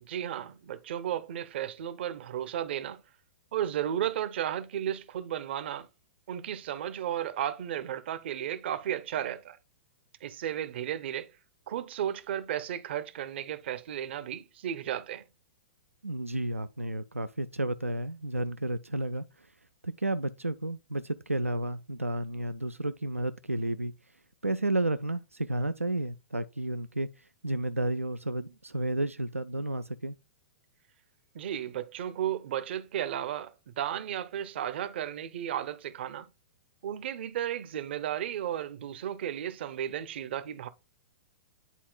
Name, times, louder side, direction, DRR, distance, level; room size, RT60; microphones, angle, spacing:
voice 1, 0.0-3.0 3.5-5.9 6.3-9.6 10.2-11.3 11.7-15.2 31.3-36.3 36.8-40.7, right 10 dB, 55° right, 0.7 m, -34 dB
voice 2, 16.0-19.5 19.8-23.9 24.4-30.2, right 1 dB, 90° right, 0.4 m, -32 dB
10.0 x 4.2 x 2.3 m
figure-of-eight pair, 105°, 7 cm